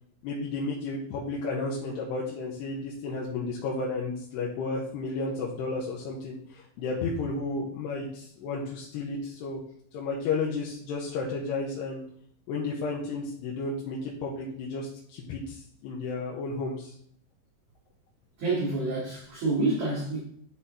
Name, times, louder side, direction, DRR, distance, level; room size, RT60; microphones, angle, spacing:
voice 1, 0.2-9.6 9.9-12.0 12.5-16.9, left 3 dB, 85° left, -4 dB, 3.2 m, -32 dB
voice 2, 18.4-20.2, right 3 dB, 55° right, -6 dB, 3.1 m, -28 dB
10.5 x 4.4 x 3.6 m, 0.62 s
omnidirectional pair, 4.7 m